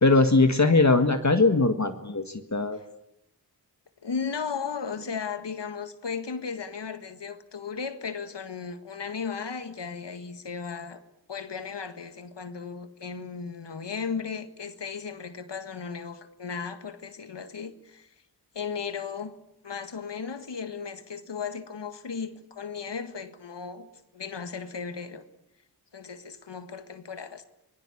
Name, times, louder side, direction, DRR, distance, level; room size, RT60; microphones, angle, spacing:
voice 1, 0.0-2.8, left 3 dB, 40° left, 1.7 m, -21 dB
voice 2, 4.0-11.0 11.3-18.1 18.6-19.3 19.6-23.9 24.1-25.3 25.9-27.4, left 6 dB, 80° left, 1.8 m, -35 dB
26.5 x 21.0 x 8.6 m
cardioid pair, 50°, 41 cm